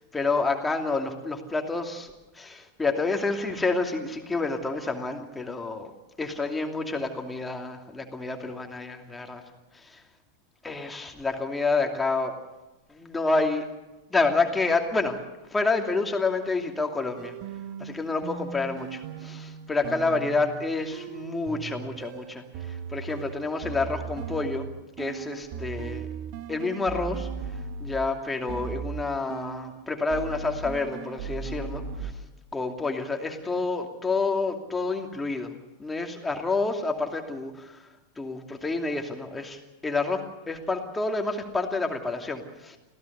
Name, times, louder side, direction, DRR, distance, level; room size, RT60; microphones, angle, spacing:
voice 1, 0.0-5.9 6.2-9.4 9.7-10.0 10.6-12.3 12.9-13.6 14.1-15.2 15.5-17.3 17.8-24.7 25.0-26.1 26.5-27.3 27.8-32.1 32.5-37.8 38.2-40.2 40.5-42.8, left 3 dB, 10° left, 4 dB, 2.7 m, -29 dB
sound 1, 17.2-28.1 28.5-29.8 30.1-32.1, right 6 dB, 45° right, 1.7 m, -37 dB
26.0 x 16.5 x 6.8 m, 1.1 s
figure-of-eight pair, 90°, 0 cm